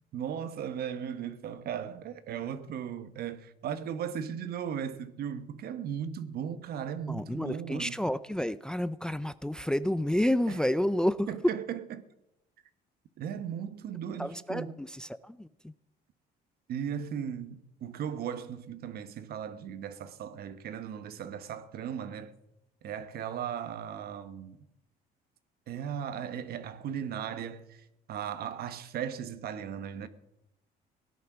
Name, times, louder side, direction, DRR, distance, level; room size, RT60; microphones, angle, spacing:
voice 1, 0.1-7.9 11.3-11.8 13.2-14.7 16.7-22.3 22.8-24.6 25.7-30.1, right 8 dB, 65° right, 1.4 m, -37 dB
voice 2, 7.1-11.3 14.2-15.7, left 1 dB, 5° left, 0.5 m, -30 dB
17.0 x 11.0 x 6.2 m
cardioid pair, 110°, 17 cm